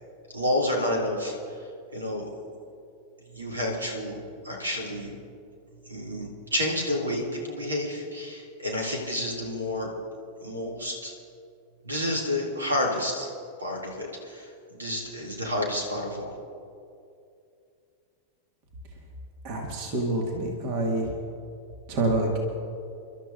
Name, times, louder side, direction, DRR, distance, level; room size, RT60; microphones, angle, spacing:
voice 1, 0.3-1.3 1.9-2.3 3.3-5.1 5.9-9.9 10.4-11.1 11.8-13.3 13.6-14.5 14.8-16.3, left 1 dB, 75° right, -1 dB, 2.4 m, -30 dB
voice 2, 19.4-21.1 21.9-22.4, right 2 dB, 45° right, 1 dB, 1.9 m, -27 dB
30.0 x 12.5 x 2.6 m, 2.5 s
figure-of-eight pair, 90°, 0 cm